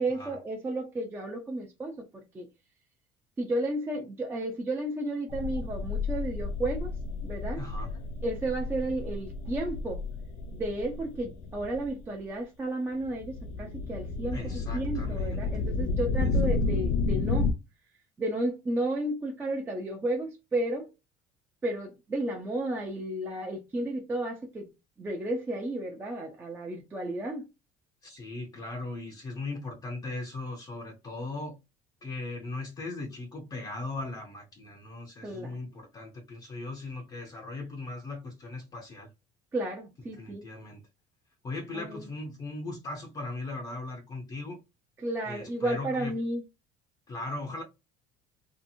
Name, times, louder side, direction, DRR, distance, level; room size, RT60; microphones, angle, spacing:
voice 1, 0.0-2.0 2.3-2.5 3.4-6.9 7.2-7.6 8.2-10.0 10.5-17.5 18.2-20.9 21.6-24.7 25.0-27.5 35.2-35.5 39.5-40.4 41.7-42.1 45.0-46.4, right 1 dB, 15° right, 0.5 m, -32 dB
sound 1, 5.3-12.0 13.0-17.5, left 3 dB, 85° left, 0.4 m, -31 dB
voice 2, 7.6-8.0 14.3-15.6 28.0-31.6 32.0-39.1 40.2-40.8 41.4-44.6 45.2-46.1 47.1-47.6, left 2 dB, 25° left, 0.6 m, -38 dB
2.7 x 2.5 x 2.6 m
cardioid pair, 155°, 16 cm